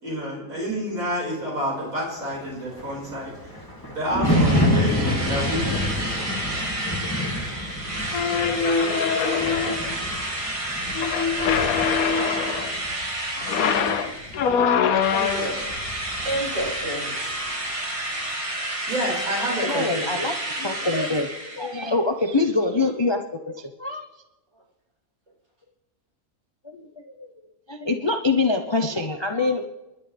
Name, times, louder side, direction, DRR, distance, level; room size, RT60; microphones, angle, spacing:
voice 1, 0.0-3.3 3.9-5.8 18.9-20.1, equal, 80° right, -4 dB, 5.7 m, -28 dB
Thunder, 2.4-16.9 17.2-17.5, left 1 dB, 15° left, 2.5 m, -29 dB
Drill, 4.2-14.6 15.0-21.9, right 1 dB, 25° right, 1.6 m, -30 dB
sound 1, 8.1-10.0 11.0-12.8 13.4-15.6, left 6 dB, 90° left, 1.3 m, -23 dB
voice 2, 13.4-14.1 14.6-14.7 15.1-15.7 16.2-17.4, right 1 dB, 55° right, -5 dB, 7.9 m, -31 dB
voice 3, 19.6-21.3 21.6-23.2 23.5-24.1 26.7-27.3 27.7-29.6, left 3 dB, 30° left, 4 dB, 0.5 m, -24 dB
30.0 x 11.0 x 3.4 m, 1.0 s
omnidirectional pair, 1.5 m